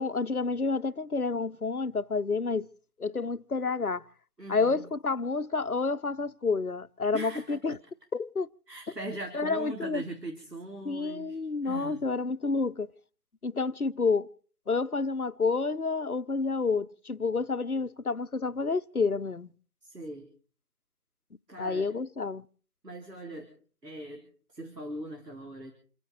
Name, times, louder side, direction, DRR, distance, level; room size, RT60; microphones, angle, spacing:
voice 1, 0.0-2.7 3.0-4.0 4.5-7.8 8.1-8.5 9.3-10.0 10.8-12.9 13.4-14.3 14.7-19.5 21.6-22.5, left 4 dB, 65° left, 0.9 m, -29 dB
voice 2, 4.4-4.9 7.1-7.8 8.7-12.0 19.8-20.3 21.5-21.9 22.8-23.5 23.8-25.7, right 1 dB, 85° right, 3.9 m, -40 dB
28.5 x 9.7 x 4.8 m
figure-of-eight pair, 180°, 47 cm